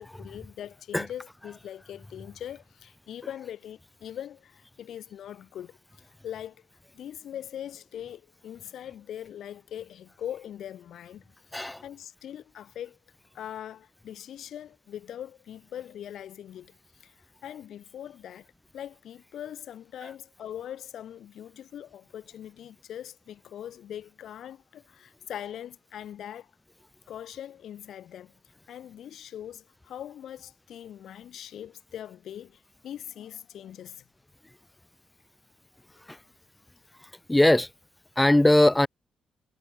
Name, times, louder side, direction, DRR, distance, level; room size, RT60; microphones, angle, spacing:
voice 1, 0.0-6.7 6.9-13.0 13.3-18.5 18.7-26.5 27.1-28.3 28.7-34.0, left 10 dB, 70° left, 2.7 m, -41 dB
voice 2, 11.5-11.8 20.0-20.1 36.1-36.2 37.3-37.7 38.2-38.9, left 1 dB, 10° left, 1.1 m, -20 dB
hypercardioid pair, 45°, 0 cm